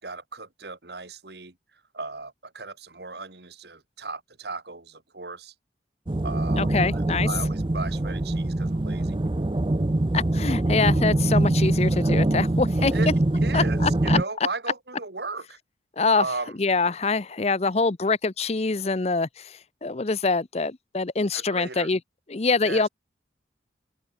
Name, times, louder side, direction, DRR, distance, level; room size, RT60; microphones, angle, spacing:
voice 1, 0.0-5.5 6.2-9.2 12.9-13.1 13.4-15.6 16.2-16.6 21.3-21.9 22.6-22.9, right 3 dB, 65° right, 2.2 m, -36 dB
sound 1, 6.1-14.2, right 1 dB, 25° right, 0.6 m, -23 dB
voice 2, 6.6-7.3 10.1-12.9 13.5-14.2 16.0-16.2 16.6-22.0 22.3-22.9, left 4 dB, 35° left, 0.7 m, -25 dB
head